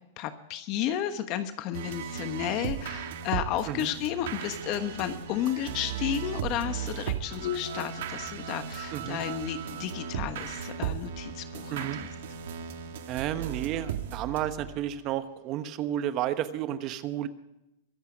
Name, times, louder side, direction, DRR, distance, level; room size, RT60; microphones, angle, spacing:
voice 1, 0.2-12.1, left 11 dB, 45° left, 9 dB, 1.2 m, -32 dB
sound 1, 1.7-15.0, right 9 dB, 70° right, 2.0 m, -36 dB
sound 2, 1.8-13.0, left 11 dB, 65° left, 1.9 m, -47 dB
voice 2, 13.1-17.3, right 11 dB, 40° right, 11 dB, 1.0 m, -32 dB
23.5 x 8.2 x 5.2 m, 0.92 s
hypercardioid pair, 135°, 0 cm